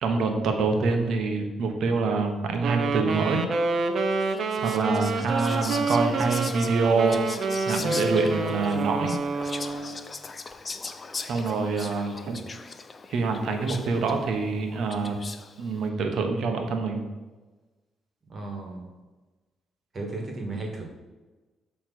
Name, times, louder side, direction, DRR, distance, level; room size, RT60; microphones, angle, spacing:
voice 1, 0.0-3.4 4.1-4.3 4.6-7.2 7.7-9.1 11.2-12.4 13.1-15.1 15.6-17.0, right 4 dB, 70° right, 4 dB, 1.1 m, -26 dB
Wind instrument woodwind instrument, 2.6-10.1, right 3 dB, 55° right, 0.7 m, -28 dB
Whispering, 4.2-15.6, left 4 dB, 35° left, 0.5 m, -39 dB
voice 2, 18.3-18.9 19.9-20.8, right 2 dB, 40° right, 1 dB, 1.8 m, -35 dB
6.8 x 3.3 x 6.0 m, 1.2 s
cardioid pair, 90°, 0 cm